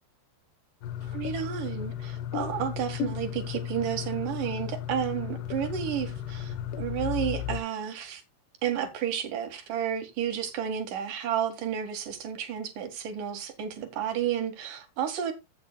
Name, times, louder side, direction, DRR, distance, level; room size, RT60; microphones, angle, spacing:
sound 1, 0.8-7.6, left 11 dB, 80° left, 3.1 m, -35 dB
voice 1, 1.0-8.2 8.6-15.3, right 9 dB, 60° right, 3.0 m, -31 dB
15.0 x 7.8 x 2.3 m
omnidirectional pair, 4.8 m